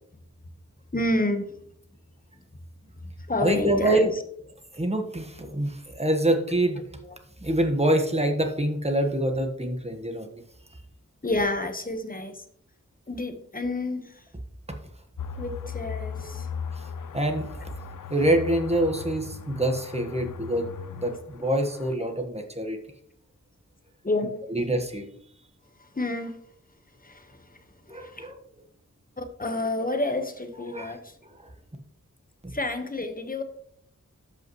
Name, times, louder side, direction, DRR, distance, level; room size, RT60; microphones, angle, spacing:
voice 1, 0.9-1.5 3.3-4.1 7.0-7.2 11.2-12.4 13.1-14.1 15.4-16.5 24.0-24.4 25.8-26.4 27.0-27.3 28.0-28.3 29.2-31.1 32.5-33.4, left 2 dB, 25° left, 7 dB, 1.2 m, -29 dB
voice 2, 3.4-4.1 4.7-6.8 7.4-10.3 17.1-17.6 18.1-20.7 20.9-22.8 24.5-25.1 27.9-28.4 30.7-30.9, right 1 dB, 20° right, 4 dB, 1.4 m, -25 dB
sound 1, 15.2-22.0, left 6 dB, 75° left, 0.6 m, -38 dB
13.0 x 5.6 x 3.1 m, 0.68 s
wide cardioid pair, 70°, 32 cm